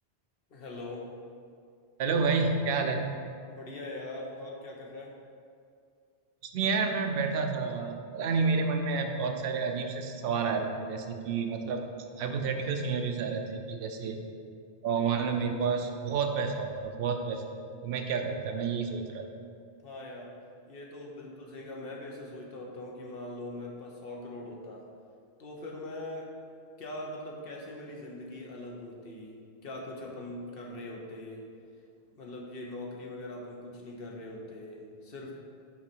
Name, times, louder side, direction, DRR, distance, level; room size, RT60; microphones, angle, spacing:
voice 1, 0.5-1.1 3.5-5.1 19.8-20.3 20.7-24.8 25.4-26.3 26.8-29.4 29.6-31.4 32.1-35.3, left 1 dB, 60° left, -1 dB, 1.1 m, -41 dB
voice 2, 2.0-3.0 6.5-11.9 12.2-14.2 14.8-17.6 17.8-19.3, right 5 dB, 65° right, 4 dB, 0.8 m, -30 dB
6.0 x 4.1 x 4.4 m, 2.3 s
omnidirectional pair, 1.1 m